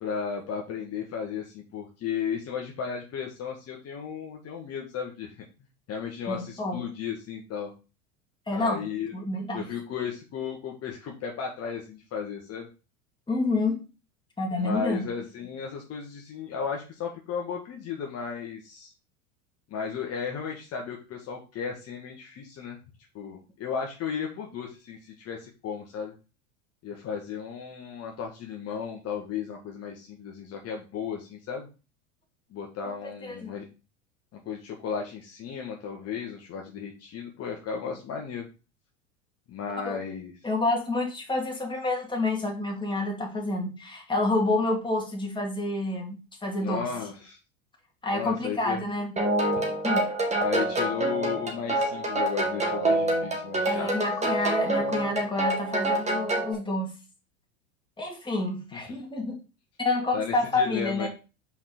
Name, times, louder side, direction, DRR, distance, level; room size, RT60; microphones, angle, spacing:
voice 1, 0.0-5.4 5.9-7.7 8.5-9.1 9.5-12.7 14.6-18.9 19.7-22.8 23.1-26.1 26.8-31.7 32.5-33.7 34.4-38.5 39.5-40.3 46.6-47.4 48.1-48.8 49.6-49.7 50.4-53.9 58.7-58.8 60.1-61.1, left 7 dB, 40° left, 1 dB, 1.4 m, -34 dB
voice 2, 6.3-6.8 8.5-8.8 9.1-9.7 13.3-13.9 14.4-15.1 32.8-32.9 33.2-33.5 39.9-40.0 40.4-46.9 48.0-49.2 49.8-50.1 53.7-56.9 58.0-59.4 59.8-61.1, left 2 dB, 10° left, 0 dB, 2.5 m, -28 dB
sound 1, 49.2-56.5, right 1 dB, 15° right, 2.0 m, -27 dB
5.7 x 4.8 x 4.3 m, 0.32 s
hypercardioid pair, 95°, 38 cm